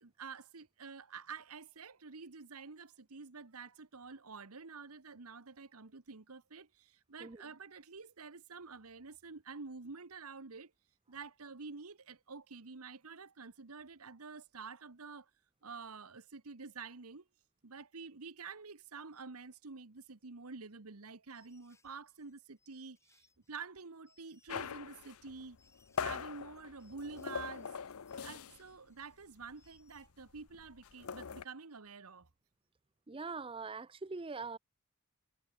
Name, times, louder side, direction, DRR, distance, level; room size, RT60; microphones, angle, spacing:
voice 1, 0.0-10.7 11.1-15.3 15.6-17.2 17.6-25.6 26.0-27.8 28.2-32.3, right 4 dB, 85° right, 1.3 m, -49 dB
sound 1, 21.3-30.1, left 4 dB, 15° left, 3.4 m, -73 dB
sound 2, 24.5-28.7 29.0-29.2 29.5-31.4, left 6 dB, 75° left, 0.7 m, -42 dB
voice 2, 33.1-34.6, right 4 dB, 25° right, 0.5 m, -43 dB
head